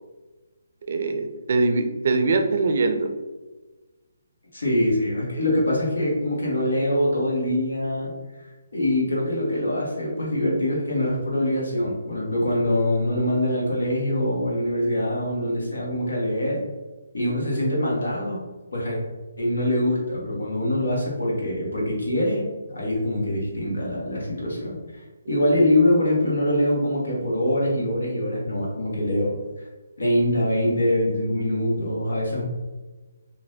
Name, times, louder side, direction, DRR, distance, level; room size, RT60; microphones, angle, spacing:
voice 1, 0.9-3.1, right 3 dB, 55° right, 6 dB, 0.4 m, -22 dB
voice 2, 4.5-8.1 8.7-16.6 17.1-18.4 18.7-19.0 19.4-29.4 30.0-32.4, left 1 dB, 85° left, -3 dB, 1.3 m, -24 dB
3.1 x 2.5 x 2.7 m, 1.2 s
hypercardioid pair, 155°, 0 cm